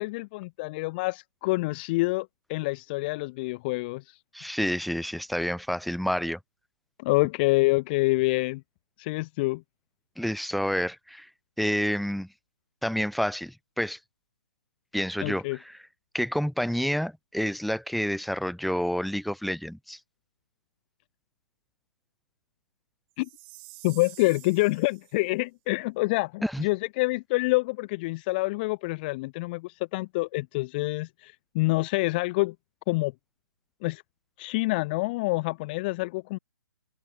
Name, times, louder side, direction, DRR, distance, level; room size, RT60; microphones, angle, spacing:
voice 1, 0.0-4.2 7.0-8.6 9.0-9.6 15.2-15.6 23.2-23.3 23.8-32.5 32.9-33.1 33.8-34.0 34.4-36.4, left 23 dB, 25° left, 0.9 m, -27 dB
voice 2, 4.3-6.4 10.2-11.3 11.6-12.3 12.8-14.0 14.9-15.8 16.1-20.0 26.4-26.7, equal, ahead, 1.6 m, -29 dB
Chime, 23.2-25.2, right 33 dB, 25° right, 7.1 m, -49 dB
open air
hypercardioid pair, 155°, 12 cm